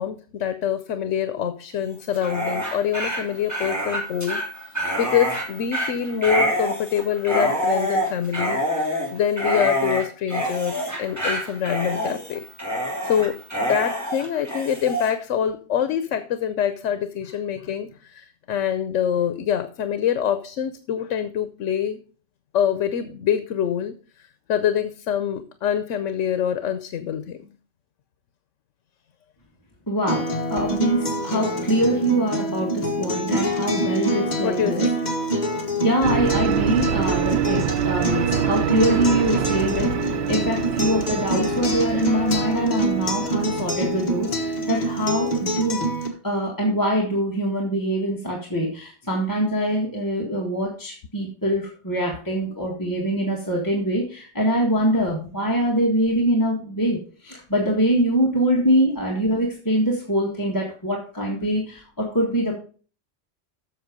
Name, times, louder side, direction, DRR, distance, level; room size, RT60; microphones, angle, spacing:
voice 1, 0.0-8.6 9.1-12.4 13.0-22.0 22.5-27.5 34.4-35.0, left 9 dB, 85° left, 10 dB, 1.1 m, -25 dB
Dog, 2.1-15.1, equal, 15° right, 2.9 m, -26 dB
voice 2, 29.9-34.8 35.8-45.8 46.2-62.6, right 1 dB, 15° left, -2 dB, 1.8 m, -24 dB
Acoustic guitar, 30.1-46.1, right 1 dB, 35° left, 1.4 m, -26 dB
sound 1, 36.0-44.9, right 11 dB, 65° right, 0.8 m, -27 dB
8.1 x 6.5 x 5.2 m, 0.39 s
omnidirectional pair, 1.2 m